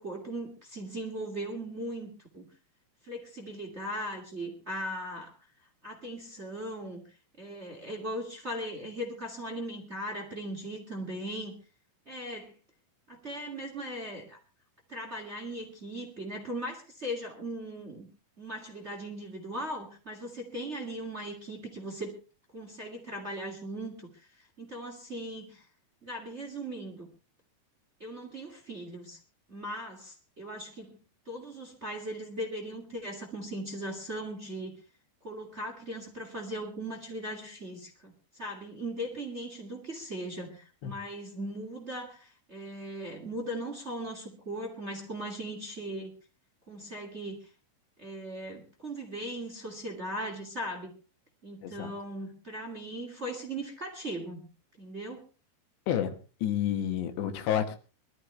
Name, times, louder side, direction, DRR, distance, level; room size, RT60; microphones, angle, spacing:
voice 1, 0.0-2.1 2.3-2.4 3.0-5.3 5.8-7.0 7.4-11.5 12.1-12.5 13.1-14.4 14.9-18.1 18.4-22.1 22.5-24.1 24.6-25.6 26.0-27.1 28.0-29.2 29.5-31.0 31.3-34.7 35.2-38.1 38.4-46.1 46.7-47.4 48.0-50.9 51.4-54.4 54.8-55.2, right 1 dB, 20° right, 2 dB, 2.4 m, -38 dB
voice 2, 51.6-52.0 55.9-57.8, left 10 dB, 80° left, 7 dB, 3.8 m, -30 dB
22.5 x 13.5 x 3.4 m, 0.35 s
omnidirectional pair, 4.9 m